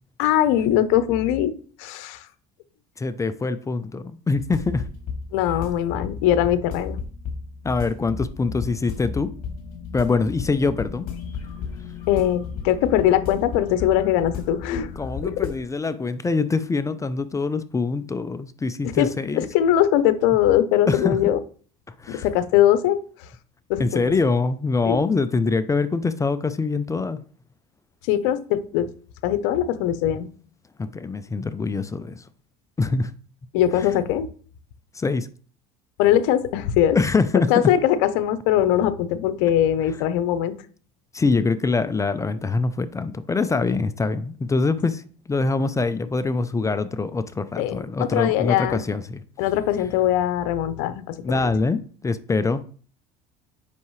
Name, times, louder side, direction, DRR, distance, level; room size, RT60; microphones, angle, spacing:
voice 1, 0.2-1.5 1.8-2.2 5.3-7.0 12.1-14.9 15.4-15.5 18.8-21.4 22.1-23.0 23.7-24.0 24.9-25.0 28.1-28.9 29.2-30.3 33.5-34.3 36.0-37.0 37.5-40.5 47.6-48.8 49.4-51.4, left 11 dB, 75° left, 0.8 m, -21 dB
voice 2, 3.0-4.8 7.6-9.3 9.9-11.1 15.0-19.5 20.9-21.2 22.0-22.3 23.8-27.2 30.8-32.2 32.8-33.1 34.9-35.3 36.9-37.5 41.1-49.2 51.2-52.6, left 4 dB, 15° left, 0.5 m, -24 dB
sound 1, 4.3-15.6, left 5 dB, 50° left, 2.9 m, -34 dB
8.4 x 5.8 x 3.2 m
supercardioid pair, 105°, 18 cm